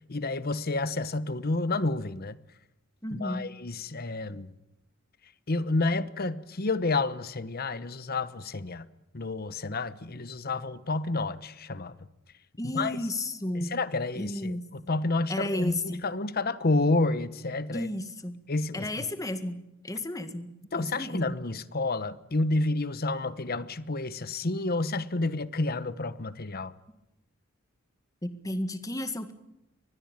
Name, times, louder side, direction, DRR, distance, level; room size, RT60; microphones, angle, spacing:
voice 1, 0.1-2.3 3.1-4.5 5.5-8.8 9.1-11.9 12.7-13.0 13.5-17.9 18.5-18.9 20.7-26.7, left 2 dB, 50° left, 1.1 m, -30 dB
voice 2, 3.0-3.5 12.6-13.8 14.2-14.7 15.3-16.0 17.7-18.4 18.7-21.4 28.2-29.3, left 1 dB, 15° left, 1.8 m, -33 dB
24.0 x 20.5 x 8.9 m
head